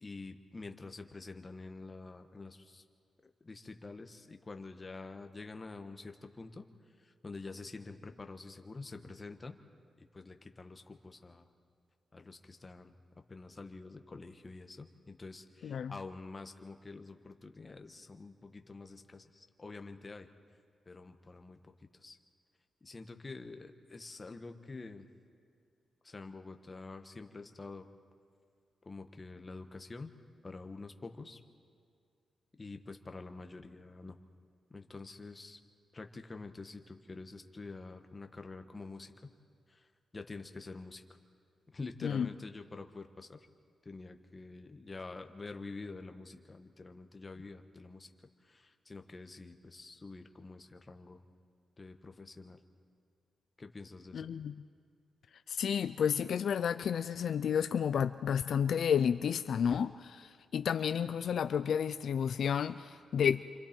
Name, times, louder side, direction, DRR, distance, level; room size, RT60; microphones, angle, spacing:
voice 1, 0.0-2.8 3.4-6.6 7.0-9.5 10.0-11.5 12.1-12.9 13.3-20.3 20.8-22.2 22.8-25.1 26.0-27.9 28.8-30.1 30.4-31.4 32.6-34.2 34.7-35.6 35.9-39.1 39.7-39.9 40.1-41.0 41.7-43.4 43.8-48.1 48.4-51.2 51.8-52.6 53.6-54.3, left 3 dB, 25° left, 6 dB, 1.3 m, -47 dB
voice 2, 15.6-15.9 42.0-42.3 54.1-54.6 55.5-63.4, left 8 dB, 70° left, 10 dB, 0.4 m, -31 dB
29.0 x 25.5 x 4.5 m, 2.3 s
wide cardioid pair, 120°, 0 cm